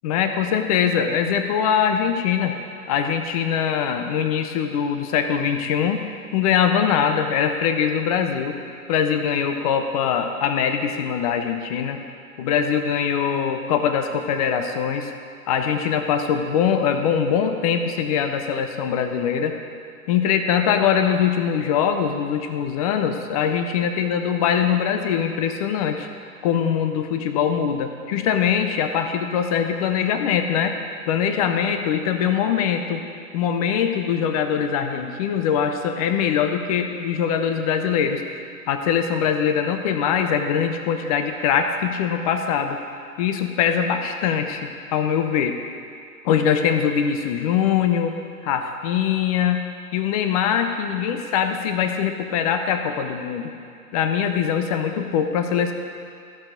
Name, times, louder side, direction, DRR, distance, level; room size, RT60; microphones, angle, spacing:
voice 1, 0.0-2.6 2.9-6.0 6.3-8.6 8.9-12.0 12.4-15.1 15.5-19.6 20.1-26.1 26.4-30.8 31.1-33.0 33.3-42.8 43.2-45.5 46.2-48.1 48.4-49.7 49.9-53.5 53.9-55.7, left 8 dB, 25° left, 6 dB, 0.6 m, -22 dB
13.5 x 6.3 x 5.1 m, 2.5 s
hypercardioid pair, 135°, 45 cm